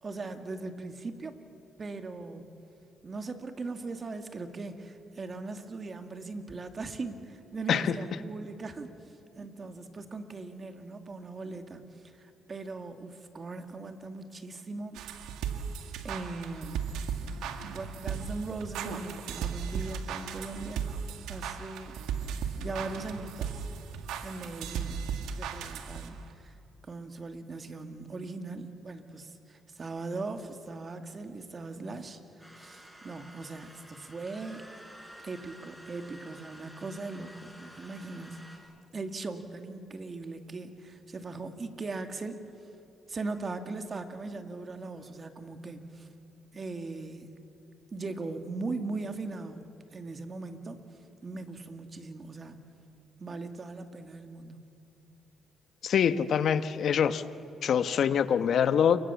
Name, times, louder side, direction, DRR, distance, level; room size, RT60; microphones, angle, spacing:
voice 1, 0.0-1.4 1.8-2.6 3.0-8.9 9.3-15.0 16.0-16.9 17.7-20.8 21.3-22.0 22.6-23.7 24.2-25.0 25.3-26.6 26.9-34.7 35.2-38.6 38.9-42.4 43.1-46.1 46.5-47.3 47.9-50.8 51.2-52.6 53.2-54.6, right 3 dB, 35° right, 2.3 m, -39 dB
sound 1, 14.9-26.3, right 7 dB, 90° right, 1.9 m, -36 dB
sound 2, 32.4-38.6, equal, 5° right, 4.7 m, -51 dB
voice 2, 55.8-57.2 57.6-59.0, left 8 dB, 65° left, 1.1 m, -25 dB
29.0 x 24.5 x 7.2 m
cardioid pair, 90°, 0 cm